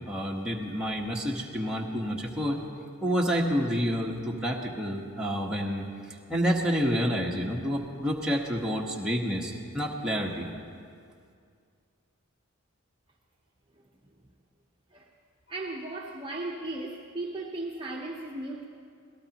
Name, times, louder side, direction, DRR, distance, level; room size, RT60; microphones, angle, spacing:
voice 1, 0.1-2.6 3.0-10.5, equal, 5° right, -3 dB, 1.3 m, -29 dB
voice 2, 15.5-18.6, right 2 dB, 25° right, -2 dB, 1.0 m, -36 dB
25.5 x 18.0 x 3.0 m, 2.3 s
head